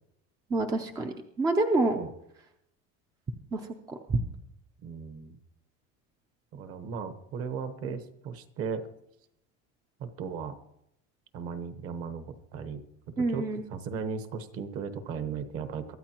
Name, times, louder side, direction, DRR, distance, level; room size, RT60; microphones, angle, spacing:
voice 1, 0.5-2.0 3.5-3.6 3.9-4.2 13.2-13.6, right 2 dB, 10° right, 5 dB, 0.5 m, -27 dB
voice 2, 4.8-5.4 6.5-8.9 10.0-10.6 11.3-12.2 12.5-16.0, right 6 dB, 40° right, 10 dB, 1.2 m, -36 dB
23.0 x 13.5 x 3.0 m, 0.79 s
cardioid pair, 170°, 34 cm